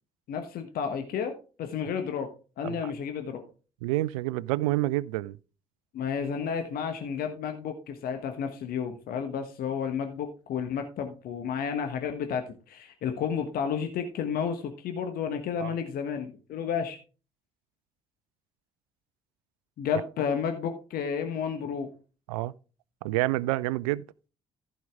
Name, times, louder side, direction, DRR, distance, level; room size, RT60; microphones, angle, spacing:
voice 1, 0.3-1.3 1.6-2.3 2.6-3.4 5.9-17.0 19.8-21.9, left 7 dB, 60° left, 1.3 m, -31 dB
voice 2, 3.8-5.4 15.6-15.7 22.3-22.5 23.0-24.0, right 17 dB, 75° right, 0.4 m, -28 dB
14.5 x 5.3 x 3.7 m
figure-of-eight pair, 45°, 18 cm